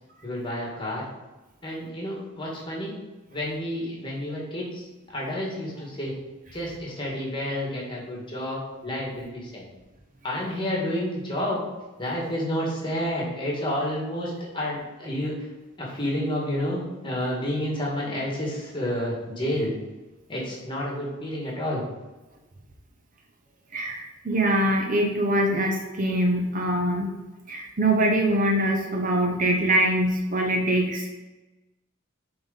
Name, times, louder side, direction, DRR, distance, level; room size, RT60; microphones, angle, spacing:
voice 1, 0.2-1.0 1.6-2.9 3.3-6.1 6.5-9.6 10.2-11.6 12.0-15.5 15.8-19.7 20.3-21.8, left 1 dB, 25° left, -2 dB, 1.7 m, -30 dB
voice 2, 23.7-27.1 27.5-31.1, right 1 dB, 40° right, 2 dB, 0.8 m, -23 dB
7.5 x 3.9 x 4.0 m, 1.1 s
head